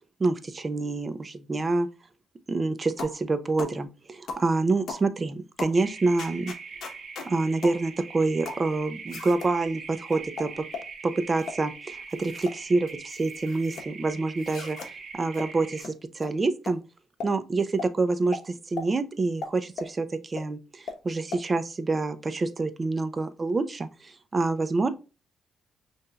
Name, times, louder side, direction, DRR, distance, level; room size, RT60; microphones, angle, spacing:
voice 1, 0.2-1.9 2.5-6.5 7.3-10.6 11.0-14.8 15.1-16.8 17.2-18.4 18.7-24.9, right 3 dB, 30° right, 11 dB, 0.6 m, -27 dB
sound 1, 3.0-3.2 3.6-3.8 4.3-4.5 4.9-5.1 5.6-5.8 6.2-7.3 7.6-7.8 8.4-8.7 9.1-9.5 10.1-10.9 11.4-11.6 12.1-12.6 12.9-13.8 14.4-14.9 15.3-15.5 15.8-15.9 16.2-16.3 16.6-16.8 17.2-17.3 17.8-17.9 18.3-18.4 18.8-18.9 19.4-19.9 20.4-20.5 20.9-21.0 21.3-21.4, left 4 dB, 65° left, 1.0 m, -37 dB
sound 2, 5.7-15.8, right 5 dB, 50° right, 1.0 m, -42 dB
5.5 x 2.7 x 2.3 m, 0.31 s
cardioid pair, 90°, 0 cm